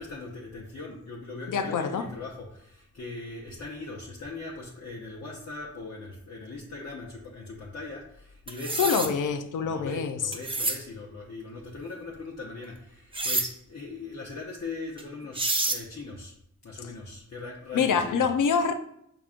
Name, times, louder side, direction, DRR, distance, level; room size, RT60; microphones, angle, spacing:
voice 1, 0.0-9.1 9.6-16.3 16.6-18.3, left 3 dB, 55° left, 0.9 m, -40 dB
voice 2, 1.5-2.0 8.8-10.3 17.7-18.7, left 6 dB, 70° left, 0.5 m, -25 dB
sound 1, 8.5-9.1 10.3-10.8 13.1-13.5 15.0-15.1 15.3-15.8, right 2 dB, 15° right, 0.6 m, -28 dB
5.9 x 3.7 x 2.5 m
cardioid pair, 65°, 32 cm